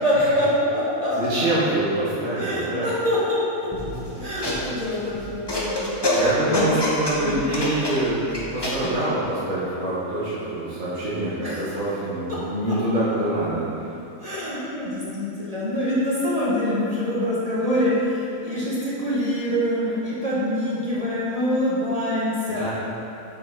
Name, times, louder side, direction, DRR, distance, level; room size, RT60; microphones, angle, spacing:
voice 1, 0.0-1.4 2.4-3.7 4.1-6.8 7.1-7.4 11.4-11.8 12.3-12.4 12.7-12.8 14.2-22.6, left 1 dB, 25° right, -8 dB, 1.5 m, -25 dB
voice 2, 1.1-2.9 6.1-8.2 8.5-13.6 22.5-22.7, right 1 dB, 50° right, -10 dB, 1.7 m, -25 dB
sound 1, 3.7-8.9, left 1 dB, 20° left, 0.9 m, -27 dB
6.7 x 5.9 x 3.9 m, 2.8 s
omnidirectional pair, 1.5 m